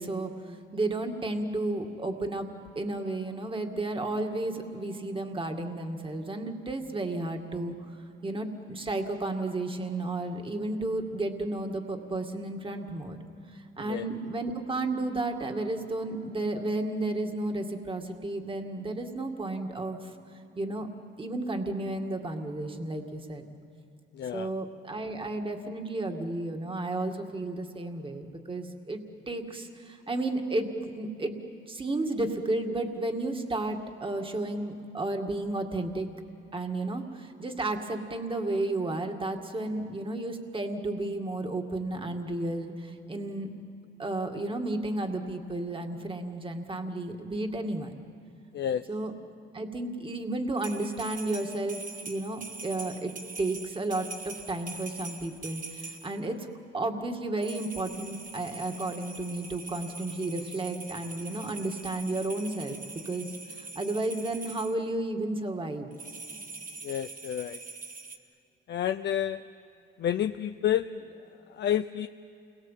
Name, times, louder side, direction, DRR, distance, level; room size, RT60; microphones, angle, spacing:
voice 1, 0.0-2.5 2.8-8.0 8.2-13.2 13.5-20.1 20.6-20.9 21.2-23.5 24.3-31.3 31.7-36.1 36.5-43.5 44.0-48.0 48.9-49.1 49.5-53.1 53.4-56.5 56.7-62.8 63.1-65.9, right 2 dB, 25° right, 3 dB, 2.2 m, -32 dB
voice 2, 24.1-24.5 48.5-48.8 66.8-67.6 68.7-69.4 70.0-71.1 71.5-72.1, left 10 dB, 60° left, 8 dB, 0.6 m, -29 dB
sound 1, 50.6-56.3 57.4-64.8 65.9-68.2, right 3 dB, 45° right, 2.1 m, -43 dB
29.5 x 22.5 x 7.5 m, 2.8 s
cardioid pair, 90°, 20 cm